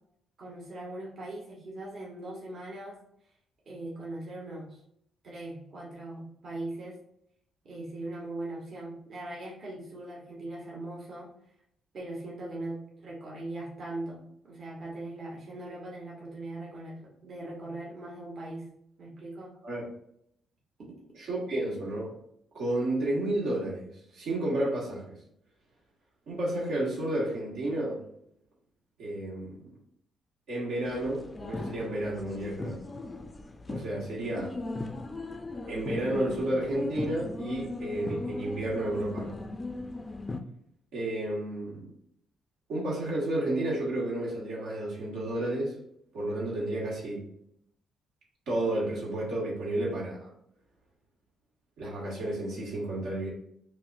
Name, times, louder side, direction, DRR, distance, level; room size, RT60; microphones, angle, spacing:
voice 1, 0.4-3.0 3.7-4.8 5.2-7.0 7.6-11.3 11.9-18.7 19.0-19.5, right 2 dB, 55° right, -4 dB, 1.2 m, -40 dB
voice 2, 21.2-22.1 22.5-25.1 26.3-28.1 29.0-29.7 30.5-32.8 33.7-34.6 35.7-39.4 40.9-41.9 42.7-45.8 46.1-47.2 48.5-50.3 51.8-53.3, right 1 dB, 80° right, -5 dB, 1.5 m, -31 dB
sound 1, 30.8-40.4, left 2 dB, 25° left, 0.4 m, -38 dB
5.8 x 2.1 x 2.5 m, 0.74 s
cardioid pair, 90°, 0 cm